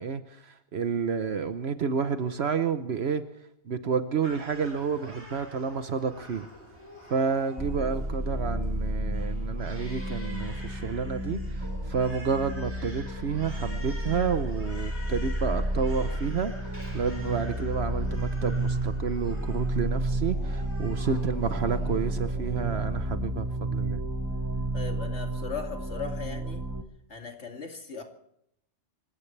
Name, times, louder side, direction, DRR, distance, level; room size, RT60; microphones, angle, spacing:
voice 1, 0.0-3.2 3.7-6.5 7.1-24.0, right 6 dB, 70° right, 9 dB, 1.1 m, -30 dB
Crying sobbing, 4.2-23.0, equal, 25° left, 5.1 m, -47 dB
sound 1, 7.6-26.8, right 1 dB, 15° right, 1.2 m, -31 dB
voice 2, 24.7-26.7 27.1-28.0, left 6 dB, 80° left, 3 dB, 2.8 m, -38 dB
27.0 x 16.0 x 3.3 m, 0.74 s
omnidirectional pair, 1.2 m